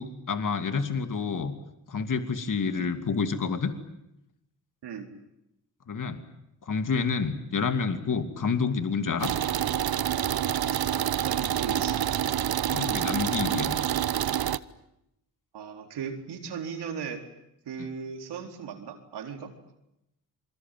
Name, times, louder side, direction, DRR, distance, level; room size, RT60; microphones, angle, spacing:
voice 1, 0.0-1.5 1.9-3.7 5.9-6.2 6.6-9.3 12.7-13.8 17.8-17.9, left 5 dB, 50° left, 8 dB, 2.8 m, -28 dB
sound 1, 9.2-14.6, right 10 dB, 65° right, 1.1 m, -27 dB
voice 2, 11.2-12.0 15.5-17.2 17.7-19.5, right 6 dB, 85° right, 5 dB, 4.3 m, -37 dB
28.0 x 23.0 x 9.4 m, 0.83 s
cardioid pair, 60°, 39 cm